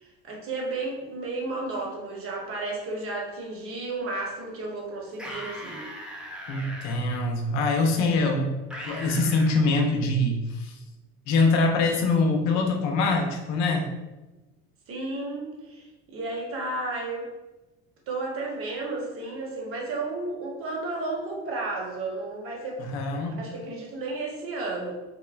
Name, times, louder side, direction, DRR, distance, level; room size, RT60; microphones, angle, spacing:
voice 1, 0.0-5.8 14.9-17.3 18.1-22.8 23.3-24.9, right 2 dB, 50° right, -1 dB, 0.9 m, -33 dB
sound 1, 5.1-6.9 8.7-9.6, equal, 5° right, 0.5 m, -39 dB
voice 2, 6.5-8.5 8.9-10.8 11.3-13.9 22.9-23.4, left 3 dB, 65° left, 2 dB, 0.6 m, -24 dB
3.5 x 2.1 x 2.4 m, 1.1 s
cardioid pair, 115°, 30 cm